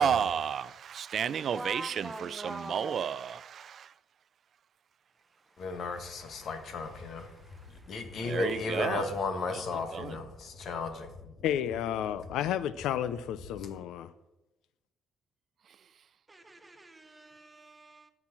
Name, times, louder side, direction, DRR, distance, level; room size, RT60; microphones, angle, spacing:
voice 1, 0.0-3.9 8.2-9.2 9.5-9.6 9.9-10.2, right 8 dB, 45° right, 0.3 m, -32 dB
voice 2, 1.4-3.1 5.5-8.3 16.3-18.1, right 2 dB, 15° right, 0.9 m, -45 dB
voice 3, 5.6-7.3 7.9-11.1, left 4 dB, 50° left, 1.6 m, -34 dB
voice 4, 11.4-14.1, left 10 dB, 85° left, 0.5 m, -31 dB
13.0 x 5.9 x 6.1 m
cardioid pair, 135°, 0 cm